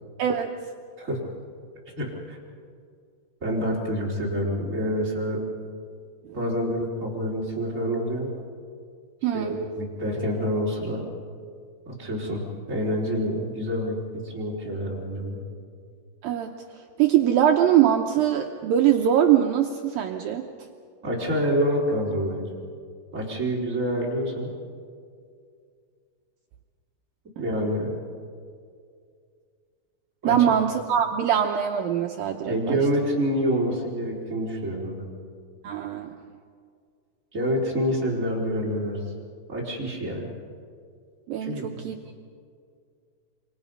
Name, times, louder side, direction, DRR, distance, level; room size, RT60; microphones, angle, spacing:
voice 1, 0.2-0.5 9.2-9.6 16.2-16.5 17.0-20.5 30.2-32.8 35.6-36.1 41.3-42.0, right 10 dB, 85° right, 3 dB, 2.0 m, -22 dB
voice 2, 2.0-2.4 3.4-5.4 6.3-8.3 9.3-11.0 11.9-12.4 12.7-14.0 14.2-15.4 21.0-22.5 23.1-24.5 27.4-27.9 30.2-30.4 32.5-35.1 37.3-39.0 39.5-40.3 41.4-41.8, equal, 20° right, -4 dB, 3.9 m, -27 dB
27.5 x 25.0 x 5.5 m, 2.2 s
omnidirectional pair, 5.2 m